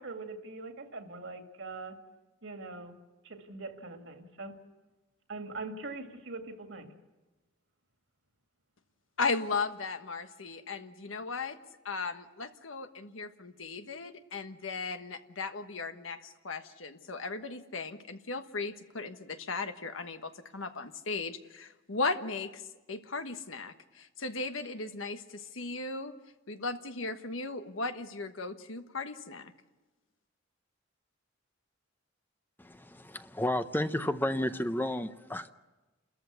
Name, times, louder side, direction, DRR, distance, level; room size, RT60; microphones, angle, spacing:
voice 1, 0.0-2.0 2.4-3.0 3.2-4.6 5.3-6.9, right 3 dB, 65° right, 4 dB, 2.3 m, -42 dB
voice 2, 9.2-11.6 11.8-22.6 22.9-26.1 26.5-29.5, left 3 dB, 80° left, 8 dB, 1.4 m, -36 dB
voice 3, 32.6-35.5, left 1 dB, 10° left, 10 dB, 0.6 m, -32 dB
29.0 x 14.0 x 8.3 m, 1.2 s
head